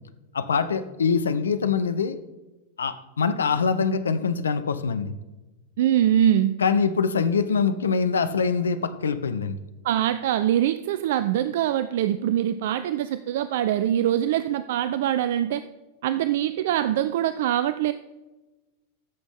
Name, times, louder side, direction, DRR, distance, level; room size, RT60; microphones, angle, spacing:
voice 1, 0.3-2.2 2.8-5.2 6.6-9.6, left 5 dB, 70° left, 12 dB, 0.6 m, -24 dB
voice 2, 5.8-6.6 9.8-15.6 16.0-17.9, right 11 dB, 55° right, 13 dB, 0.3 m, -23 dB
14.0 x 6.0 x 3.6 m, 1.1 s
figure-of-eight pair, 90°, 0 cm